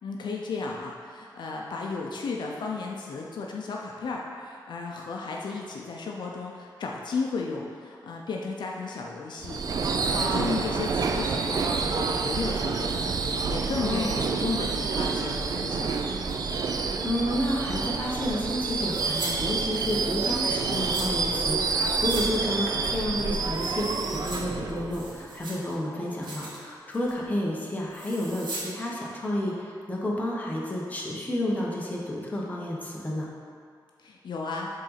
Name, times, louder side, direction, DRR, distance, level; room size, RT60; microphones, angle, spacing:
voice 1, 0.0-15.9 34.0-34.7, left 4 dB, 75° left, -1 dB, 0.6 m, -34 dB
Subway metro underground / Screech, 9.4-25.4, right 4 dB, 55° right, 0.4 m, -28 dB
voice 2, 13.8-14.1 17.0-33.3, left 1 dB, 20° left, -4 dB, 1.0 m, -30 dB
sound 1, 18.9-19.3 19.6-21.1 21.6-22.3 22.5-22.6 23.1-24.4 24.8-25.7 26.1-26.6 26.9-27.2 27.9-28.6 28.9-29.0, right 2 dB, 75° right, 1.4 m, -40 dB
5.3 x 3.9 x 5.7 m, 2.3 s
wide cardioid pair, 130°, 8 cm